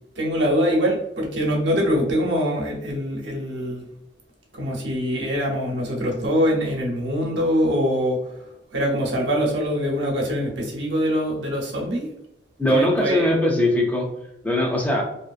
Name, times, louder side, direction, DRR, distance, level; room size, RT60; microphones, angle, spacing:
voice 1, 0.2-3.9 4.5-8.2 8.7-12.1 12.7-13.3, equal, 85° right, -1 dB, 0.8 m, -23 dB
voice 2, 12.6-14.1 14.4-15.0, left 1 dB, 10° left, 0 dB, 0.4 m, -20 dB
2.7 x 2.4 x 2.3 m, 0.85 s
head